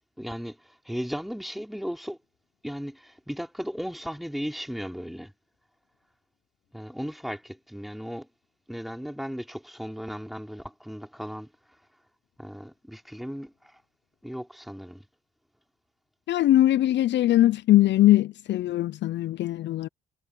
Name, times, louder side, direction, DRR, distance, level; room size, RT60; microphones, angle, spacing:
voice 1, 0.2-2.2 2.6-5.3 6.7-8.3 8.7-11.5 12.4-13.8 14.2-15.0, equal, ahead, 3.5 m, -36 dB
voice 2, 16.3-19.9, left 14 dB, 65° left, 0.5 m, -21 dB
cardioid pair, 90°, 20 cm